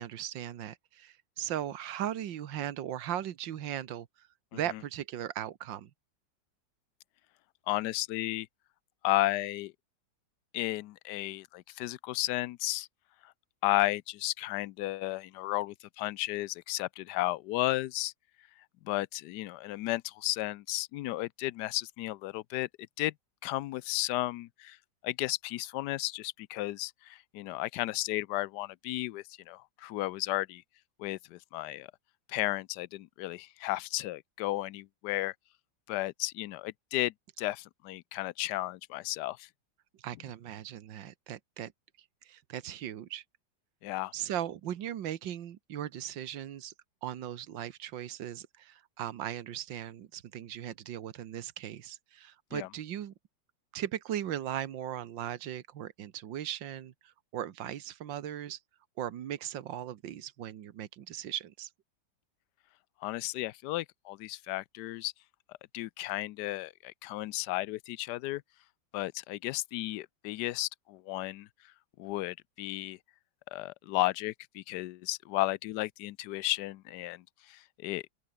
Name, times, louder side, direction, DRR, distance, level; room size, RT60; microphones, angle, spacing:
voice 1, 0.0-4.3 4.5-5.9 40.0-41.7 42.2-43.2 44.1-46.7 47.0-53.1 53.7-58.6 59.0-61.7, right 11 dB, 80° right, 1.8 m, -38 dB
voice 2, 7.7-8.5 9.0-9.7 10.5-12.9 13.2-13.3 13.6-18.1 18.8-22.7 23.0-23.1 23.4-24.8 25.0-30.6 31.0-31.9 32.3-35.3 35.9-39.5 43.8-44.1 52.5-52.7 63.0-65.1 65.7-68.4 68.9-71.5 72.0-73.0 73.5-78.0, left 17 dB, 75° left, 1.1 m, -33 dB
open air
omnidirectional pair, 2.0 m